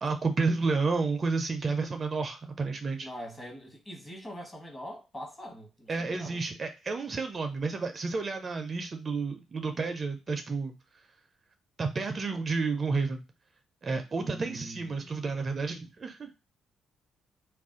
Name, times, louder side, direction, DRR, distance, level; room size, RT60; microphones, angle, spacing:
voice 1, 0.0-3.1 5.9-10.7 11.8-13.2 13.8-16.3, right 4 dB, 40° right, 0.4 m, -31 dB
voice 2, 3.0-6.4 14.2-15.1, equal, 25° left, 1.1 m, -43 dB
2.4 x 2.2 x 3.6 m
cardioid pair, 90°, 0 cm